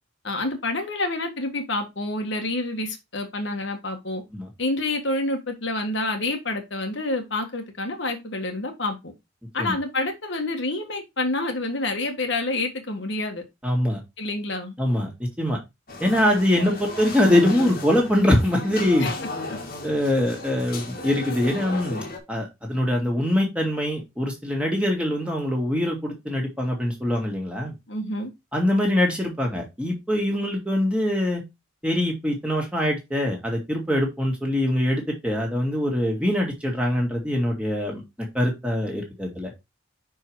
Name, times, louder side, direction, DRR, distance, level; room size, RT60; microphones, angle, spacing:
voice 1, 0.2-4.2 4.6-9.1 9.5-13.4 14.2-14.7 19.0-19.1 19.5-19.6 27.9-28.3, left 2 dB, 60° left, 1.5 m, -28 dB
voice 2, 13.6-14.0 14.8-15.6 16.0-19.1 19.8-27.7 28.5-31.4 31.8-39.5, left 1 dB, 5° right, 1.9 m, -23 dB
sound 1, 15.9-22.2, left 2 dB, 45° left, 1.7 m, -34 dB
5.8 x 4.9 x 4.6 m
head